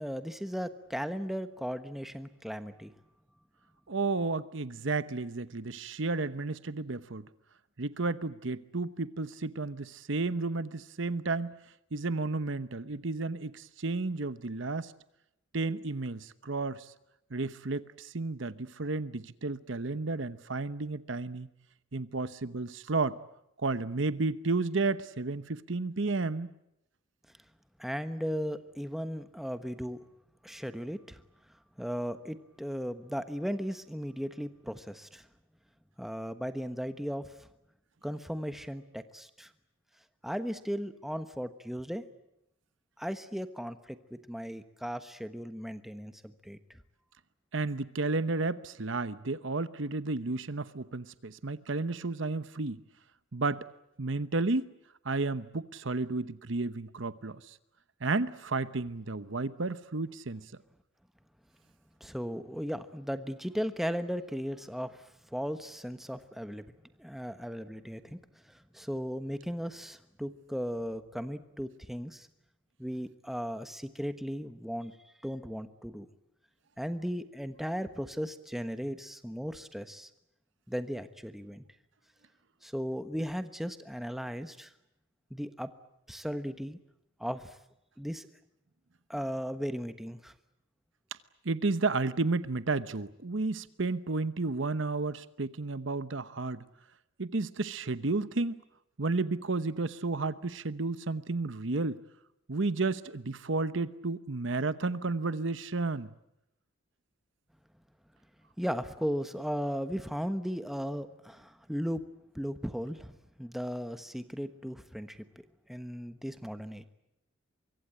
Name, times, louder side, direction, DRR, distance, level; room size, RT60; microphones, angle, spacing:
voice 1, 0.0-2.9 27.8-30.0 30.4-31.2 31.8-35.3 36.0-37.5 38.0-39.5 40.2-42.0 43.0-46.8 62.0-66.7 67.0-68.2 68.5-72.3 72.8-75.0 75.2-76.1 76.8-80.1 80.7-81.6 82.6-84.7 85.3-85.7 86.1-86.8 87.2-87.6 88.0-88.3 89.1-90.3 108.6-112.0 112.3-115.2 115.7-116.9, equal, ahead, 1.2 m, -36 dB
voice 2, 3.9-7.2 7.8-11.5 11.9-14.9 15.5-16.9 17.3-21.5 21.9-23.2 23.6-26.5 47.5-52.8 53.3-53.6 54.0-54.7 55.0-57.6 58.0-60.5 91.4-96.6 97.2-98.6 99.0-102.0 102.5-106.1, right 3 dB, 65° right, 0.9 m, -32 dB
24.5 x 23.5 x 8.9 m
head